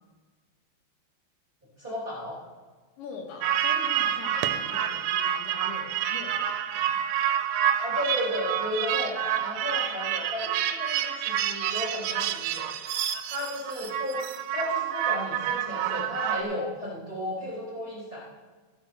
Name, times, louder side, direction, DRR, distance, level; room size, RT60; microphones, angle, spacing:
voice 1, 1.8-2.4 7.8-12.6 13.2-14.2 14.5-18.2, left 1 dB, 15° right, -6 dB, 2.3 m, -34 dB
voice 2, 3.0-7.1, left 5 dB, 80° left, 1 dB, 3.8 m, -43 dB
sound 1, 3.4-16.4, right 10 dB, 80° right, 2.8 m, -28 dB
15.0 x 5.3 x 6.0 m, 1.4 s
omnidirectional pair, 5.3 m